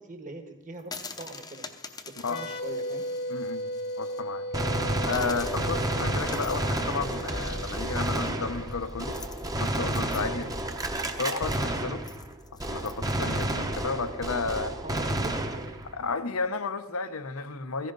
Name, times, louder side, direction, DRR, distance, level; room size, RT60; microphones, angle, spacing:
voice 1, 0.0-1.7 2.0-3.0 13.1-13.4 14.8-15.7, right 2 dB, 35° right, 5 dB, 1.5 m, -41 dB
sound 1, 0.8-4.2 4.6-4.7 5.1-13.4, left 4 dB, 20° left, 0.8 m, -46 dB
sound 2, 2.2-9.7, equal, 45° left, 1.1 m, -37 dB
voice 2, 3.3-3.7 4.0-4.4 5.0-9.2 9.5-10.6 11.2-12.0 12.5-14.7 15.9-17.9, left 4 dB, 75° left, 11 dB, 0.8 m, -32 dB
Gunshot gunfire, 4.5-12.3 12.6-16.0, right 1 dB, 15° right, 0.9 m, -30 dB
15.5 x 15.0 x 3.9 m, 1.0 s
head